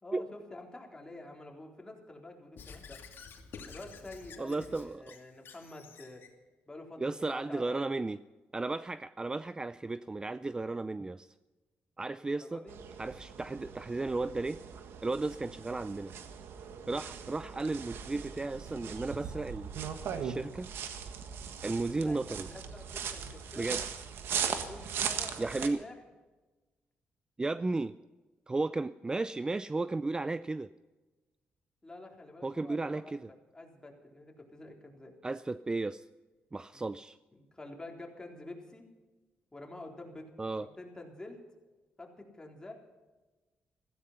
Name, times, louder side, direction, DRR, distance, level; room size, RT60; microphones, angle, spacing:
voice 1, 0.0-3.0 3.7-6.2 6.7-8.0 12.3-12.8 22.0-23.7 24.3-26.0 31.8-33.2 33.5-35.2 36.7-36.8 37.3-38.8 39.5-40.3 40.6-41.4 42.0-42.7, left 2 dB, 20° left, 0 dB, 3.9 m, -48 dB
Squeak / Writing, 2.6-6.3, left 5 dB, 70° left, 2.5 m, -50 dB
voice 2, 4.4-5.2 7.0-8.2 8.5-11.3 12.0-12.6 13.0-14.6 15.0-16.1 16.9-19.7 20.1-20.7 21.6-22.5 23.6-23.8 25.4-25.8 27.4-27.9 28.5-30.7 32.4-33.3 35.2-36.1 36.5-37.2 40.4-40.7, right 3 dB, 20° right, 15 dB, 0.4 m, -34 dB
sound 1, 12.7-25.7, right 7 dB, 85° right, 1.6 m, -39 dB
16.0 x 15.0 x 5.7 m, 1.2 s
cardioid pair, 90°, 4 cm